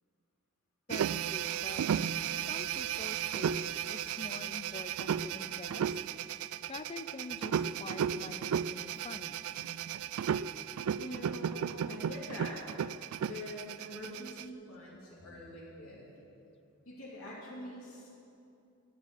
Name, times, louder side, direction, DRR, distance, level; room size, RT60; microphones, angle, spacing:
voice 1, 0.9-1.8 2.5-6.0 6.7-9.4 11.5-12.0, left 3 dB, 30° left, 11 dB, 0.5 m, -46 dB
sound 1, 0.9-14.4, right 8 dB, 80° right, 0.3 m, -34 dB
voice 2, 11.0-12.6 13.3-16.1 16.8-18.1, left 1 dB, 80° left, -5 dB, 3.0 m, -45 dB
12.5 x 9.5 x 8.4 m, 2.7 s
head